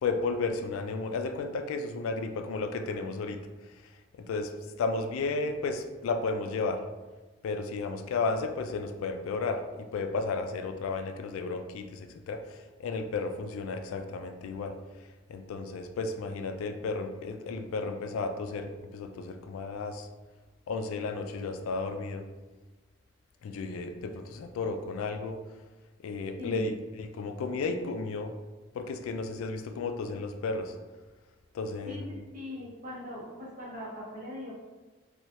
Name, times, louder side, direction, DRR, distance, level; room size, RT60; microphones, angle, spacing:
voice 1, 0.0-3.5 4.2-4.5 4.8-6.9 7.4-14.8 15.3-20.1 20.7-22.3 23.4-25.4 26.0-28.3 28.7-30.7 31.5-32.1, left 3 dB, 90° left, 7 dB, 0.3 m, -33 dB
voice 2, 26.4-26.8 31.8-34.5, left 1 dB, 40° right, -5 dB, 0.9 m, -40 dB
3.0 x 2.3 x 2.8 m, 1.2 s
head